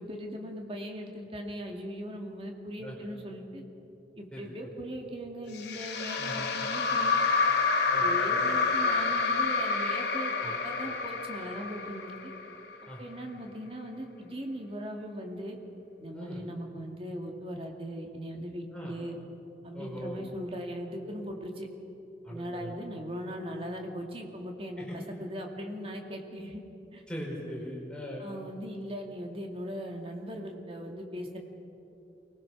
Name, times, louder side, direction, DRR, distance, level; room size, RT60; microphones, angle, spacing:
voice 1, 0.0-3.6 4.2-7.2 8.0-12.3 13.0-15.6 16.0-19.2 19.6-21.7 22.3-26.6 26.9-27.0 28.2-31.4, equal, 30° right, 2 dB, 2.2 m, -39 dB
sound 1, 5.5-12.8, left 4 dB, 75° left, 2.3 m, -28 dB
voice 2, 6.2-6.5 7.9-8.3 10.4-10.5 12.9-13.0 16.1-16.4 18.7-19.0 19.7-20.2 22.2-22.7 24.8-25.0 27.1-28.3, equal, 5° left, -4 dB, 4.5 m, -40 dB
24.0 x 19.5 x 6.2 m, 3.0 s
head